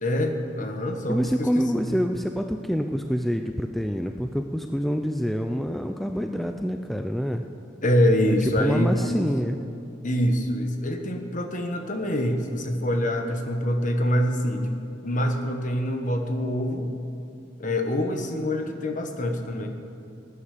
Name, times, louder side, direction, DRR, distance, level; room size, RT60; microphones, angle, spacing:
voice 1, 0.0-2.0 7.8-9.1 10.0-16.9 17.6-19.7, equal, 45° left, 5 dB, 1.4 m, -25 dB
voice 2, 1.1-7.4 8.6-9.6, equal, ahead, 5 dB, 0.4 m, -26 dB
19.0 x 9.8 x 6.8 m, 2.6 s
head